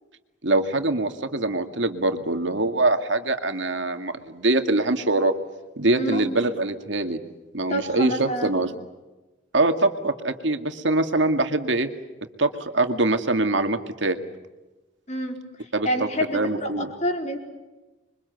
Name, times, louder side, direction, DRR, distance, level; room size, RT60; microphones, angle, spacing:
voice 1, 0.4-5.3 5.8-7.2 7.5-8.7 9.5-11.9 12.4-14.2 15.7-16.1 16.3-16.9, right 2 dB, 70° right, 7 dB, 2.2 m, -23 dB
voice 2, 7.7-8.5 15.1-17.4, equal, 35° left, 3 dB, 4.7 m, -28 dB
27.0 x 24.0 x 8.2 m, 1.1 s
head